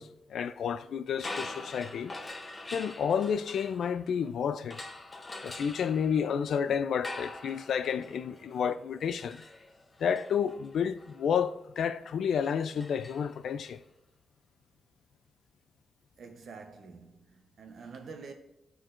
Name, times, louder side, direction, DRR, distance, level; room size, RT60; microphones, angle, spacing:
voice 1, 0.0-2.1 2.7-4.8 5.4-9.4 10.0-13.8, left 7 dB, 80° left, 0.3 m, -30 dB
sound 1, 1.1-4.2 4.7-13.7, left 2 dB, 25° left, 0.7 m, -45 dB
voice 2, 16.2-18.3, right 4 dB, 65° right, 0.8 m, -47 dB
13.0 x 4.5 x 2.5 m
wide cardioid pair, 120°, 0 cm